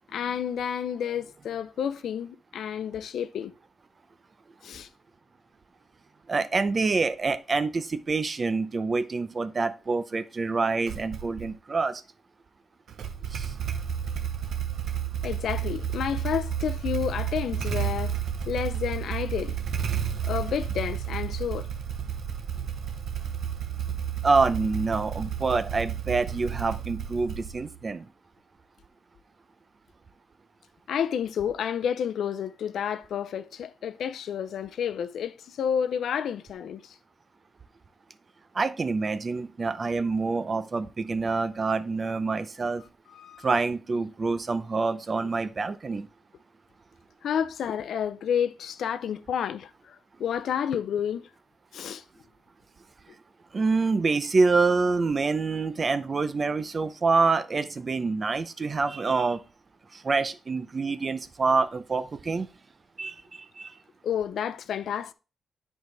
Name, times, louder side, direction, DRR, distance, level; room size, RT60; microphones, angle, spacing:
voice 1, 0.1-3.5 4.6-4.9 15.2-18.1 18.5-19.6 20.2-21.7 30.9-37.0 42.8-43.5 47.2-51.3 51.7-52.0 64.0-65.1, left 8 dB, 85° left, 0.5 m, -30 dB
voice 2, 6.3-12.0 13.3-13.5 24.2-28.1 38.5-42.8 43.4-46.1 53.5-59.4 59.9-62.5 63.0-63.2 63.6-63.7, right 4 dB, 30° right, 0.6 m, -26 dB
Motorcycle / Engine starting, 10.9-11.5 12.9-27.8, right 8 dB, 70° right, 0.8 m, -32 dB
10.5 x 4.6 x 3.3 m
wide cardioid pair, 160°, 0 cm